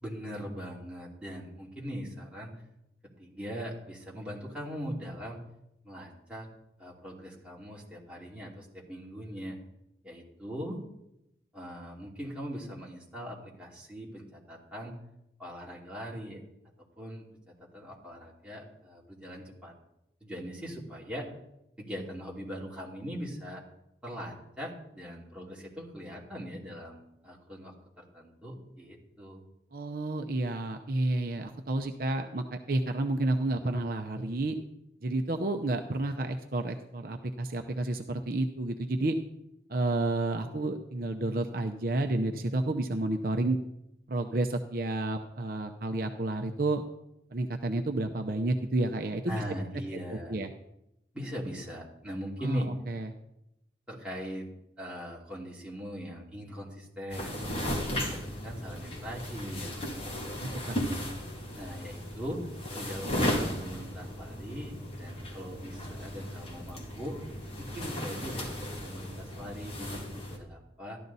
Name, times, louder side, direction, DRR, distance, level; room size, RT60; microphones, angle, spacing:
voice 1, 0.0-2.5 3.2-5.4 5.8-6.5 6.8-9.6 10.0-10.8 11.5-15.0 15.4-16.4 17.0-17.2 17.7-19.7 20.2-21.3 21.8-23.6 24.0-29.4 49.3-50.4 51.1-52.7 53.9-54.5 54.8-57.4 57.8-59.7 61.5-62.5 62.7-67.2 67.6-71.0, equal, 5° right, -5 dB, 2.6 m, -40 dB
voice 2, 29.7-34.6 35.0-39.2 39.7-43.6 44.1-46.8 47.3-49.4 50.1-50.5 52.4-53.1 60.4-60.8, right 2 dB, 50° right, 5 dB, 0.7 m, -30 dB
sound 1, 57.1-70.4, equal, 30° left, 2.3 m, -36 dB
14.0 x 11.5 x 4.1 m, 0.85 s
head